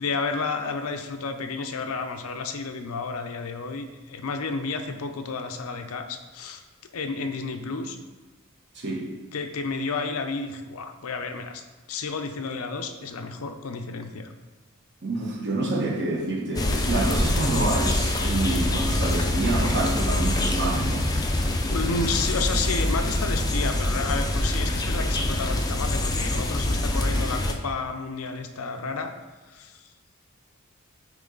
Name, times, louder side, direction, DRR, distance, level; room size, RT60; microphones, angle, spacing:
voice 1, 0.0-6.6 6.9-8.0 9.3-11.6 11.9-14.3 21.7-29.1 29.5-29.8, left 4 dB, 75° left, 6 dB, 0.6 m, -31 dB
voice 2, 8.7-9.1 15.0-21.1, right 2 dB, 50° right, -3 dB, 1.4 m, -27 dB
sound 1, 16.6-27.5, left 1 dB, 15° left, 0.5 m, -25 dB
8.5 x 3.1 x 3.9 m, 1.2 s
head